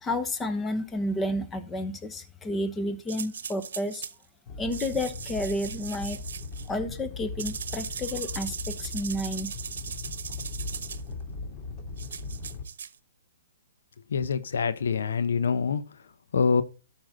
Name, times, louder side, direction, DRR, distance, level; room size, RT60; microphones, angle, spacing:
voice 1, 0.0-4.0 4.6-6.2 6.7-9.5, left 1 dB, 15° left, 1.2 m, -31 dB
sound 1, 3.1-4.1 4.7-6.7 7.4-11.0 12.0-12.9, right 7 dB, 70° right, 0.9 m, -38 dB
Animal, 4.5-12.6, left 3 dB, 30° left, 2.5 m, -39 dB
voice 2, 14.1-15.8 16.3-16.6, left 5 dB, 75° left, 0.9 m, -25 dB
13.0 x 6.0 x 3.8 m
hypercardioid pair, 130°, 0 cm